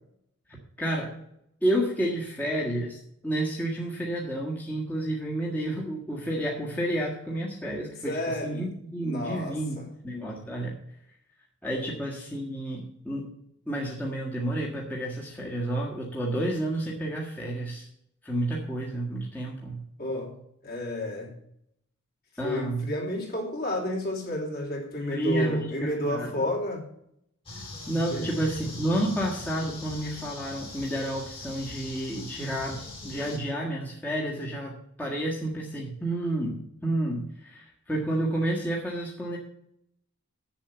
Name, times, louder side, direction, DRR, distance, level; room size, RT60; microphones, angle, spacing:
voice 1, 0.5-1.1 1.6-8.1 8.4-9.8 10.0-10.8 11.6-13.3 13.7-17.9 18.2-19.8 22.4-22.8 25.1-26.4 27.9-39.4, right 1 dB, 10° left, -4 dB, 1.6 m, -30 dB
voice 2, 8.0-8.7 9.0-9.9 20.0-20.3 20.6-21.3 22.4-26.9 28.1-28.6, left 1 dB, 45° left, -1 dB, 3.1 m, -31 dB
sound 1, 27.5-33.4, left 1 dB, 25° left, 2.5 m, -41 dB
7.6 x 7.3 x 8.1 m, 0.74 s
head